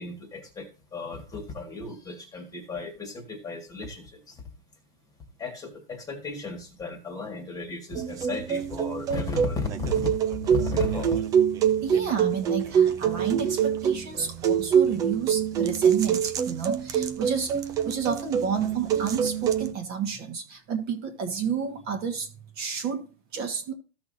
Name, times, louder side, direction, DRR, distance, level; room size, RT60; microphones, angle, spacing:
voice 1, 0.0-4.4 5.4-11.3, left 3 dB, 10° left, 1.7 m, -35 dB
sound 1, 7.9-19.7, right 8 dB, 10° right, 0.4 m, -25 dB
voice 2, 11.8-17.5 17.8-23.0 23.3-23.7, right 6 dB, 30° right, 1.5 m, -30 dB
14.5 x 5.9 x 2.7 m
hypercardioid pair, 150°, 30 cm